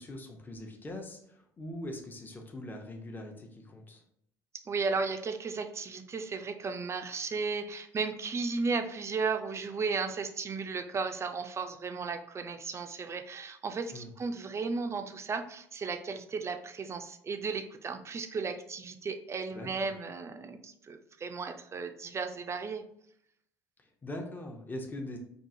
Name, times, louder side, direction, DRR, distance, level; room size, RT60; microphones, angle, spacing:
voice 1, 0.0-4.0 13.9-14.1 19.5-19.9 23.8-25.2, left 1 dB, 20° left, 2 dB, 0.6 m, -42 dB
voice 2, 4.5-22.8, right 4 dB, 30° right, 7 dB, 0.4 m, -35 dB
3.7 x 2.4 x 2.6 m, 0.71 s
hypercardioid pair, 70°, 9 cm